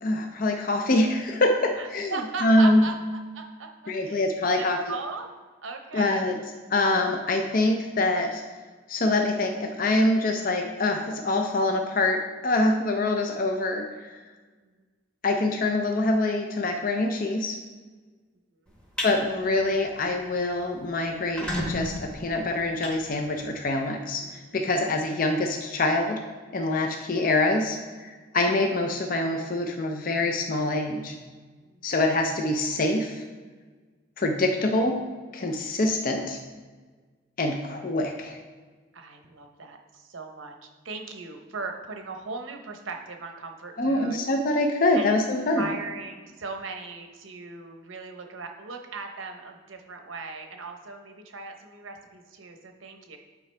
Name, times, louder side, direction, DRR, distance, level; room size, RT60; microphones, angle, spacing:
voice 1, 0.0-2.8 3.9-4.9 5.9-6.4 6.7-8.4 8.9-14.1 15.2-17.6 19.0-26.2 26.5-31.1 31.8-33.2 34.2-35.0 35.3-36.4 37.4-38.4 43.8-45.7, left 2 dB, 45° left, 3 dB, 0.5 m, -25 dB
voice 2, 1.8-2.9 3.3-4.2 4.6-5.3 5.6-6.4 14.6-14.7 18.6-18.7 23.9-24.7 31.6-31.8 38.9-40.5 40.8-44.2 45.0-45.2 45.6-53.2, right 3 dB, 80° right, 4 dB, 0.9 m, -38 dB
sound 1, 18.7-19.1 19.6-19.8 20.2-20.3 20.5-20.6 21.1-23.7, equal, 5° left, 0.9 m, -33 dB
8.3 x 4.9 x 3.3 m, 1.4 s
head